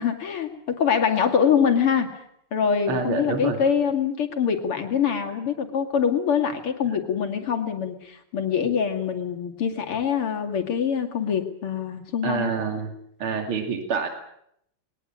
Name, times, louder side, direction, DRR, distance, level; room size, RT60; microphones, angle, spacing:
voice 1, 0.0-2.2 2.5-12.5, left 7 dB, 85° left, 5 dB, 3.3 m, -24 dB
voice 2, 2.9-3.6 12.2-12.9 13.2-14.1, right 5 dB, 75° right, 5 dB, 3.3 m, -27 dB
21.5 x 19.0 x 8.8 m, 0.73 s
omnidirectional pair, 2.4 m